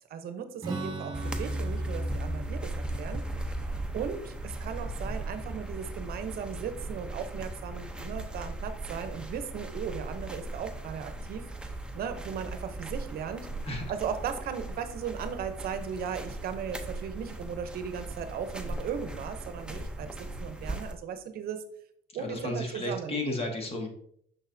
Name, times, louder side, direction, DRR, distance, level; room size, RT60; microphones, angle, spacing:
voice 1, 0.0-3.2 3.6-13.5 13.9-21.6 22.1-23.2, right 7 dB, 65° right, 9 dB, 0.7 m, -37 dB
Strum, 0.6-6.2, right 3 dB, 25° right, 1.5 m, -42 dB
sound 1, 1.1-20.9, right 1 dB, 5° right, 0.6 m, -37 dB
voice 2, 22.2-23.9, left 1 dB, 35° left, 3 dB, 1.5 m, -33 dB
6.3 x 6.1 x 2.6 m, 0.66 s
cardioid pair, 110°, 17 cm